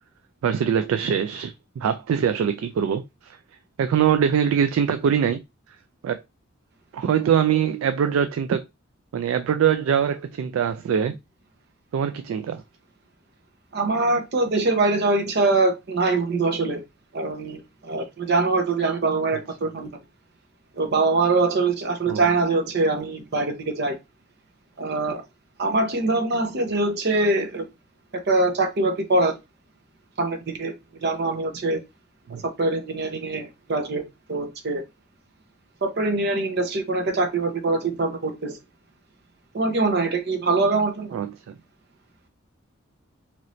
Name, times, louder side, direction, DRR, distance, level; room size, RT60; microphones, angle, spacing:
voice 1, 0.4-3.4 3.8-5.4 6.0-6.2 6.9-8.6 9.1-11.2 11.9-12.6 22.1-22.2 32.3-32.4 41.1-41.6, right 8 dB, 85° right, 0.3 m, -23 dB
voice 2, 13.7-16.8 17.1-19.9 20.7-24.0 24.8-25.2 25.6-27.6 28.3-29.4 30.2-31.8 32.3-34.0 34.3-34.8 35.8-38.6 39.5-41.1, right 3 dB, 55° right, 0.7 m, -23 dB
3.0 x 2.6 x 3.0 m
head